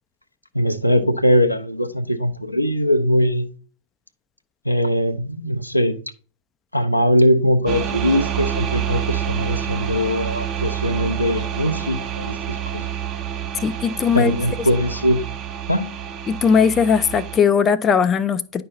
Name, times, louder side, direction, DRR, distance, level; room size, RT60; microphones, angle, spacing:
voice 1, 0.5-3.5 4.6-6.0 6.7-12.4 12.7-12.9 14.1-15.2 15.7-15.9, equal, 90° left, 0.6 m, -20 dB
sound 1, 7.6-17.4, right 9 dB, 35° right, 1.0 m, -28 dB
voice 2, 13.5-14.3 16.3-18.6, left 6 dB, 25° left, 0.5 m, -18 dB
10.0 x 5.4 x 2.5 m
figure-of-eight pair, 90°, 0 cm